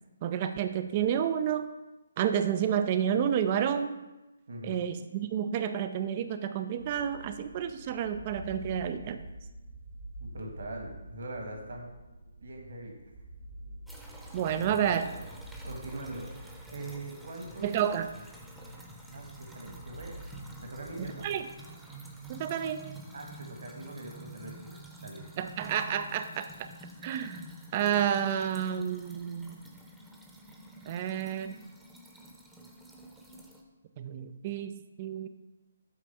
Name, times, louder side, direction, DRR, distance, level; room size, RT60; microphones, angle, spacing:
voice 1, 0.2-1.7 2.2-3.9 4.6-9.2 14.3-15.1 17.6-18.1 21.0-21.4 22.3-22.8 25.4-26.7 27.0-27.4 27.7-29.5 30.9-31.5 34.0-35.3, right 9 dB, 30° right, 9 dB, 0.4 m, -30 dB
voice 2, 4.5-4.8 10.2-11.9 12.4-13.0 14.6-14.8 15.6-16.3 16.7-17.7 19.1-20.1 20.6-21.3 23.1-25.2, right 2 dB, 60° right, 1 dB, 1.5 m, -42 dB
sound 1, 6.8-21.4, right 1 dB, 90° right, 2.0 m, -48 dB
sound 2, 13.9-33.6, right 1 dB, ahead, 0.8 m, -49 dB
8.4 x 3.3 x 5.4 m, 1.1 s
figure-of-eight pair, 140°, 0 cm